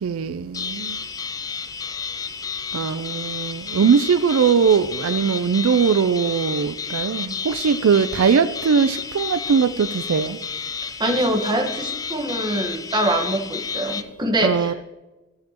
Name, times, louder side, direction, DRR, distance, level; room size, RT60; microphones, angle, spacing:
voice 1, 0.0-1.0 2.7-10.4 14.4-14.7, right 6 dB, 75° right, 13 dB, 0.4 m, -20 dB
sound 1, 0.5-14.0, left 6 dB, 15° left, 0.4 m, -31 dB
voice 2, 10.8-14.7, right 1 dB, 20° right, 2 dB, 1.3 m, -24 dB
15.0 x 7.5 x 2.9 m, 1.1 s
head